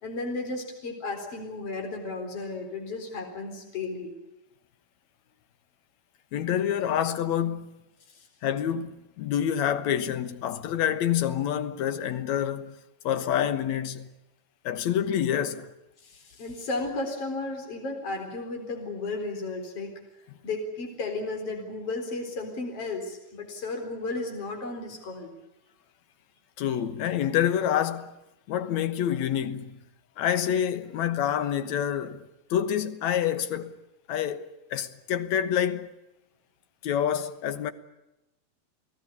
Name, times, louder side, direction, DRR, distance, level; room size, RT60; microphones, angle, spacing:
voice 1, 0.0-4.1 8.2-8.3 16.0-19.9 20.4-25.3, left 3 dB, 55° left, 5.0 m, -34 dB
voice 2, 6.3-7.8 8.4-12.8 13.0-14.1 14.6-15.7 26.6-28.2 28.5-29.8 30.2-32.2 32.5-33.7 34.1-35.9 36.8-37.7, left 10 dB, 75° left, 2.5 m, -27 dB
29.5 x 17.5 x 8.5 m
omnidirectional pair, 3.3 m